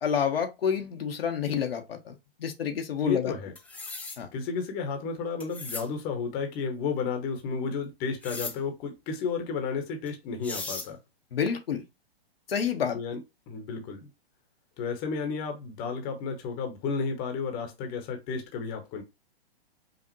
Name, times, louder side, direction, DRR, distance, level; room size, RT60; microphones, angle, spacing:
voice 1, 0.0-2.1 2.4-3.3 4.2-4.3 11.3-11.8 12.5-13.0, left 7 dB, 70° left, 1.2 m, -28 dB
voice 2, 3.0-3.5 4.3-11.0 12.9-13.2 13.5-14.1 14.8-19.0, left 5 dB, 30° left, 1.0 m, -32 dB
sound 1, 3.6-4.2 5.4-5.9 8.2-8.6 10.1-10.2 10.4-10.9, left 3 dB, 5° left, 0.5 m, -37 dB
5.1 x 2.5 x 3.0 m
hypercardioid pair, 125°, 30 cm